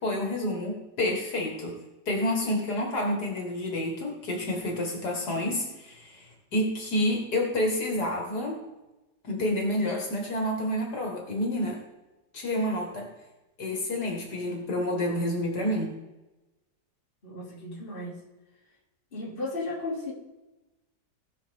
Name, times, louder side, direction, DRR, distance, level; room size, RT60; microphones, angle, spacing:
voice 1, 0.0-1.8 2.1-8.6 9.2-11.8 12.3-13.1 13.6-15.9, left 1 dB, 65° left, 0 dB, 2.1 m, -29 dB
voice 2, 17.2-18.2 19.1-20.1, left 2 dB, 30° left, -4 dB, 2.2 m, -34 dB
18.0 x 6.1 x 3.5 m, 1.1 s
omnidirectional pair, 1.9 m